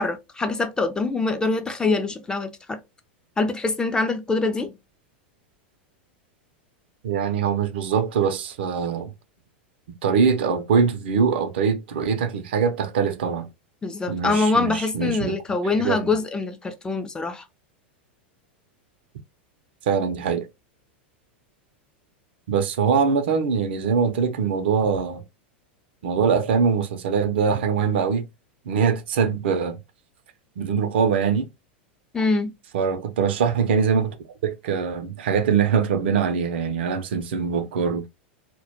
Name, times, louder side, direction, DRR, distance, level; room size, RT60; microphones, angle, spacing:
voice 1, 0.0-2.8 3.4-4.7 13.8-17.4 32.1-32.5, left 3 dB, 15° left, 0.4 m, -24 dB
voice 2, 7.0-9.1 10.0-13.5 14.1-15.4 15.8-16.1 19.9-20.5 22.5-25.2 26.0-28.3 28.7-29.8 30.6-31.5 32.7-34.2 34.4-38.1, right 6 dB, 75° right, 0.4 m, -23 dB
2.1 x 2.1 x 2.8 m
hypercardioid pair, 105°, 6 cm